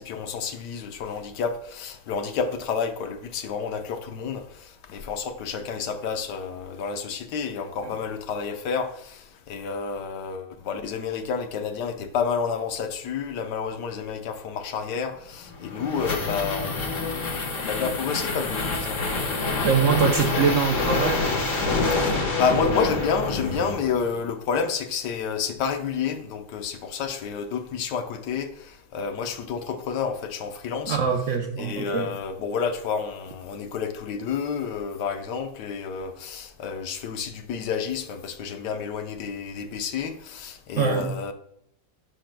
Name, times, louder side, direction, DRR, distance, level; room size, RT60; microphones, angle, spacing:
voice 1, 0.0-19.0 21.9-31.0 31.6-41.3, left 6 dB, 65° left, 1.3 m, -30 dB
sound 1, 15.4-24.2, left 3 dB, 45° left, 1.5 m, -27 dB
voice 2, 19.6-21.2 30.9-32.1 40.7-41.2, right 6 dB, 65° right, 0.7 m, -23 dB
11.5 x 5.9 x 2.2 m
omnidirectional pair, 2.1 m